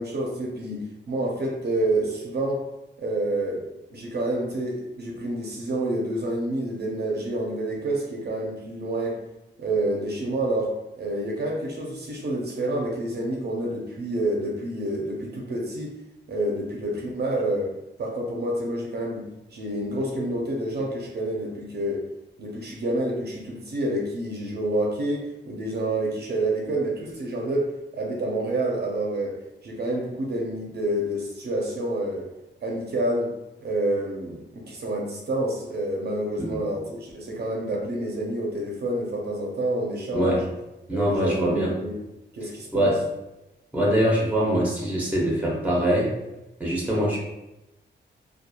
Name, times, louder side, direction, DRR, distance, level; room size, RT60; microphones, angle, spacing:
voice 1, 0.0-2.6 3.0-9.2 9.6-16.0 16.3-17.7 18.0-22.0 22.4-29.4 29.6-32.3 32.6-33.3 33.6-40.4 40.9-42.0 42.3-43.0, right 1 dB, 60° right, -1 dB, 0.5 m, -28 dB
voice 2, 40.9-41.7 42.7-43.0 43.7-46.1 46.6-47.2, right 1 dB, 10° right, -3 dB, 0.6 m, -23 dB
2.8 x 2.3 x 2.2 m, 0.94 s
wide cardioid pair, 160°, 19 cm